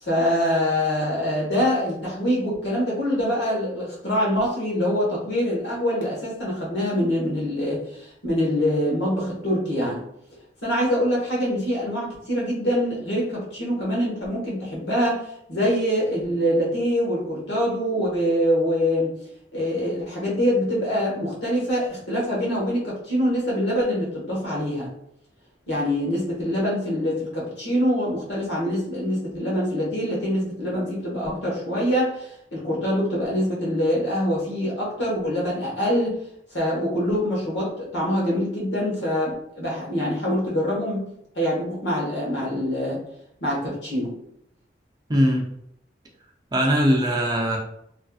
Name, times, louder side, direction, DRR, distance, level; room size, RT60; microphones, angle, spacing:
voice 1, 0.0-10.0 10.6-19.1 19.5-24.9 25.7-36.2 36.5-41.1 41.3-43.0 43.4-44.2, equal, 90° left, -5 dB, 1.3 m, -24 dB
voice 2, 45.1-45.5 46.5-47.6, equal, 25° right, -1 dB, 0.5 m, -20 dB
3.1 x 2.6 x 2.3 m, 0.76 s
head